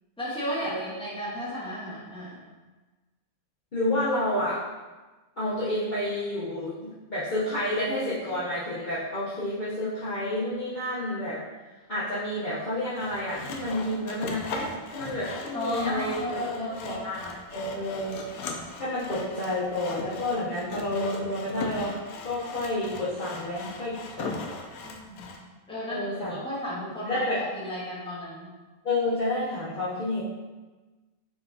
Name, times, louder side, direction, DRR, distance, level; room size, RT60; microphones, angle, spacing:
voice 1, 0.2-2.4 15.5-17.0 24.8-28.5, left 1 dB, 5° left, -9 dB, 1.2 m, -34 dB
voice 2, 3.7-4.6 5.4-11.4 11.9-18.2 18.8-21.9 22.2-24.3 25.9-26.4 26.7-27.4 28.8-30.2, left 1 dB, 35° left, -12 dB, 0.9 m, -30 dB
Sawing, 13.0-25.4, left 3 dB, 75° left, 1.0 m, -39 dB
4.5 x 4.1 x 2.8 m, 1.2 s
omnidirectional pair, 1.6 m